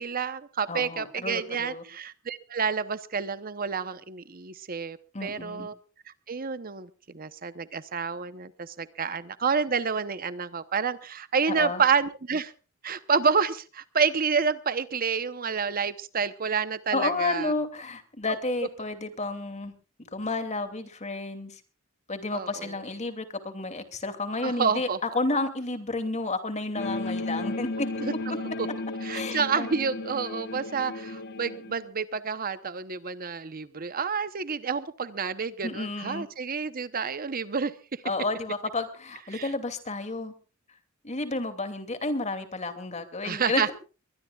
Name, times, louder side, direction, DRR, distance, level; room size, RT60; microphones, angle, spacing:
voice 1, 0.0-5.7 6.3-12.5 12.8-17.5 22.3-22.7 24.4-25.0 28.0-28.1 28.6-28.7 29.0-38.0 39.3-39.5 43.2-43.7, right 5 dB, 45° right, 13 dB, 0.9 m, -29 dB
voice 2, 0.7-1.8 5.1-5.7 11.5-11.8 16.9-19.7 20.1-21.6 22.1-27.9 29.1-29.7 35.6-36.3 38.0-40.3 41.0-43.7, left 3 dB, 35° left, 9 dB, 2.7 m, -31 dB
sound 1, 26.8-31.8, left 2 dB, 50° left, 1.1 m, -34 dB
23.0 x 21.0 x 2.4 m, 0.35 s
head